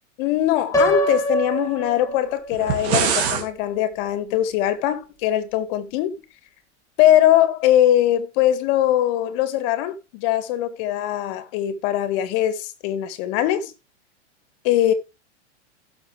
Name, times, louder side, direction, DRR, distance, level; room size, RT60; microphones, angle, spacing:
voice 1, 0.2-6.2 7.0-13.7 14.6-14.9, left 12 dB, 45° left, 2.0 m, -21 dB
Piano, 0.7-2.7, right 1 dB, 10° left, 2.4 m, -24 dB
sound 1, 2.5-3.5, right 7 dB, 60° right, 2.9 m, -23 dB
15.5 x 6.9 x 3.4 m
hypercardioid pair, 135°, 36 cm